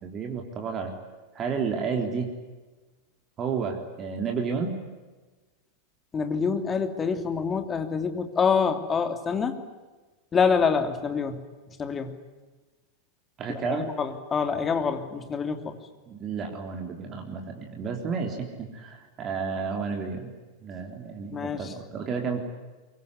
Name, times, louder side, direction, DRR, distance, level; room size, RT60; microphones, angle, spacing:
voice 1, 0.0-0.9 1.3-2.3 3.4-4.8 13.4-13.9 16.1-20.3 20.6-22.4, right 5 dB, 30° right, 3 dB, 3.6 m, -31 dB
voice 2, 6.1-9.6 10.3-11.4 11.7-12.1 13.5-15.8 21.3-21.7, left 5 dB, 20° left, 7 dB, 2.9 m, -26 dB
24.0 x 23.5 x 9.8 m, 1.2 s
figure-of-eight pair, 90°, 0 cm